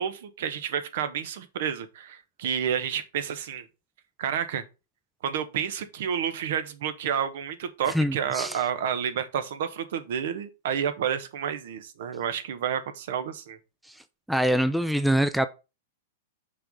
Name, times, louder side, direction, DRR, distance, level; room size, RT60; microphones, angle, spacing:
voice 1, 0.0-3.7 4.2-4.6 5.2-13.6, right 8 dB, 65° right, 1.2 m, -30 dB
voice 2, 7.9-8.6 13.9-14.0 14.3-15.5, equal, ahead, 0.5 m, -24 dB
5.7 x 4.1 x 5.3 m
hypercardioid pair, 135°, 0 cm